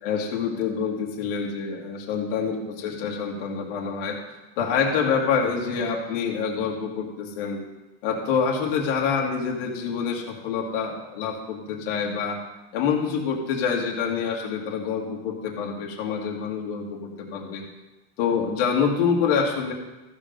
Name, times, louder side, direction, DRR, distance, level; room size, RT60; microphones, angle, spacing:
voice 1, 0.0-4.2 4.6-7.6 8.0-12.4 12.7-17.6 18.2-19.7, left 6 dB, 50° left, 0 dB, 1.9 m, -26 dB
14.0 x 5.0 x 5.2 m, 1.1 s
supercardioid pair, 175°, 36 cm